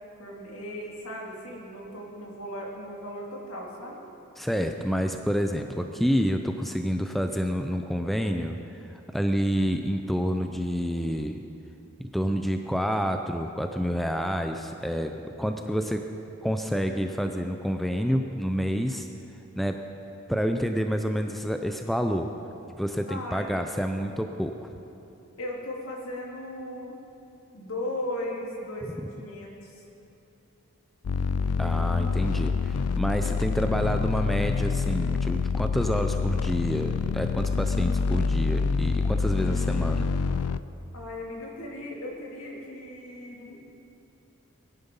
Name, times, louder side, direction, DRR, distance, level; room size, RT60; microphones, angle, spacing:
voice 1, 0.2-4.0 23.1-23.5 25.4-26.9 27.5-29.8 40.9-43.6, left 1 dB, 75° left, -2 dB, 2.9 m, -37 dB
voice 2, 4.4-8.6 9.1-11.4 12.1-16.0 16.4-19.1 19.6-19.8 20.3-22.3 22.8-24.7 31.6-40.1, equal, ahead, 5 dB, 0.4 m, -28 dB
sound 1, 31.0-40.6, left 4 dB, 90° left, 0.4 m, -26 dB
20.5 x 11.0 x 5.4 m, 2.9 s
head